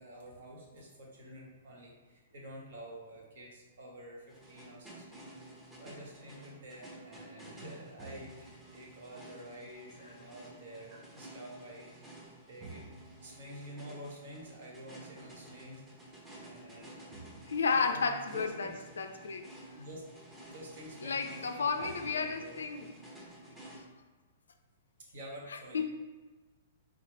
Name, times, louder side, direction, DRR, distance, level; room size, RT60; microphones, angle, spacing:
voice 1, 0.0-5.3 5.8-11.9 12.5-15.8 16.3-17.0 17.7-18.8 19.7-20.1 20.4-22.5 25.1-25.8, right 1 dB, 60° right, -2 dB, 1.1 m, -49 dB
sound 1, 4.3-23.8, right 1 dB, 15° right, 0.9 m, -52 dB
voice 2, 17.5-19.4 21.0-22.9 25.7-25.8, left 5 dB, 70° left, 6 dB, 0.4 m, -32 dB
3.7 x 3.1 x 3.1 m, 1.3 s
figure-of-eight pair, 110°, 0 cm